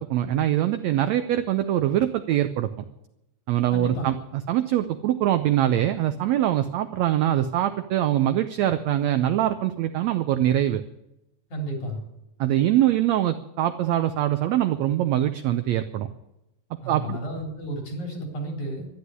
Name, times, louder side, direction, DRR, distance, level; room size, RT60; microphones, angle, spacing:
voice 1, 0.1-2.7 3.5-4.1 4.5-10.8 12.4-16.1 16.9-17.2, right 12 dB, 85° right, 9 dB, 1.5 m, -23 dB
voice 2, 3.7-4.1 11.5-12.0 16.8-18.9, right 1 dB, 55° left, 2 dB, 5.1 m, -32 dB
12.0 x 11.5 x 9.6 m, 0.88 s
omnidirectional pair, 3.9 m